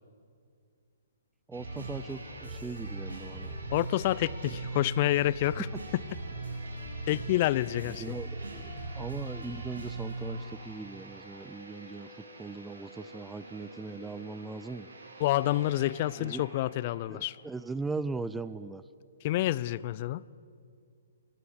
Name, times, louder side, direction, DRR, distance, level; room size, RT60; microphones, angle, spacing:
voice 1, 1.5-3.5 7.9-8.7 8.9-14.9 16.2-16.4 17.1-18.8, right 3 dB, 5° right, 14 dB, 0.6 m, -39 dB
sound 1, 1.5-17.5 17.8-17.9, right 2 dB, 70° right, 7.8 m, -41 dB
voice 2, 3.7-5.7 7.1-8.1 15.2-17.4 19.2-20.2, left 15 dB, 40° left, 21 dB, 0.6 m, -28 dB
22.5 x 21.0 x 10.0 m, 2.3 s
figure-of-eight pair, 125°, 0 cm